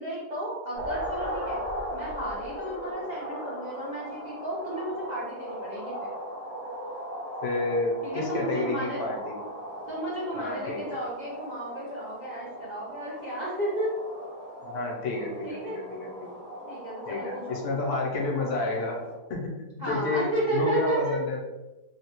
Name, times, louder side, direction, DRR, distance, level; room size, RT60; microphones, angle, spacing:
voice 1, 0.0-1.6 1.9-6.1 8.0-9.1 9.9-13.9 15.4-15.8 16.7-17.6 19.8-21.2, right 1 dB, 60° right, -7 dB, 0.4 m, -33 dB
sound 1, 0.7-19.2, equal, 45° left, 0.9 m, -38 dB
voice 2, 7.4-9.4 10.3-11.0 14.6-16.3 17.0-19.0 19.3-21.4, left 3 dB, 70° left, -1 dB, 1.2 m, -30 dB
3.6 x 2.3 x 2.8 m, 1.1 s
omnidirectional pair, 1.7 m